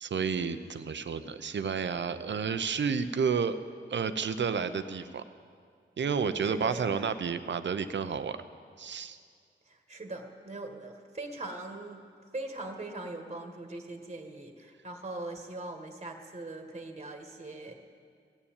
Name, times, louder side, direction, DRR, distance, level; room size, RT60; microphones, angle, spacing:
voice 1, 0.0-3.6 3.9-5.2 6.0-8.4 8.8-9.2, right 6 dB, 65° right, 11 dB, 0.7 m, -31 dB
voice 2, 6.4-7.1 9.7-12.0 12.3-17.7, right 2 dB, 35° right, 4 dB, 1.7 m, -41 dB
15.5 x 7.2 x 8.9 m, 2.1 s
cardioid pair, 50°, 20 cm